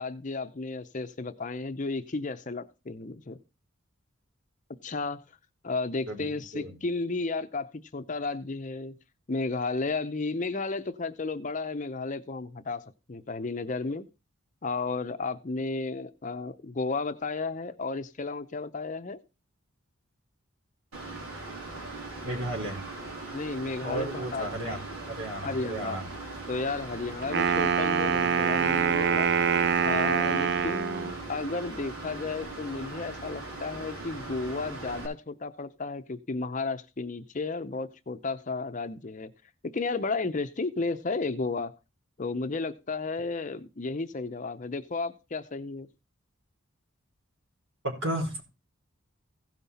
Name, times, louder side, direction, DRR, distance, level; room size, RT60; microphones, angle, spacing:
voice 1, 0.0-3.4 4.8-5.2 5.6-8.9 9.3-12.8 13.1-14.1 14.6-19.2 23.3-24.8 25.4-26.0 26.5-29.3 29.8-39.3 39.7-41.7 42.2-45.9, left 3 dB, 35° left, 0.6 m, -33 dB
voice 2, 6.1-6.7 22.2-22.8 23.8-24.8 25.1-26.1 47.8-48.4, right 1 dB, 70° right, 3.9 m, -33 dB
Mechanical fan, 20.9-35.1, right 2 dB, 90° right, 4.2 m, -40 dB
Wind instrument woodwind instrument, 27.2-31.2, right 6 dB, 55° right, 0.6 m, -25 dB
16.0 x 5.5 x 4.2 m
head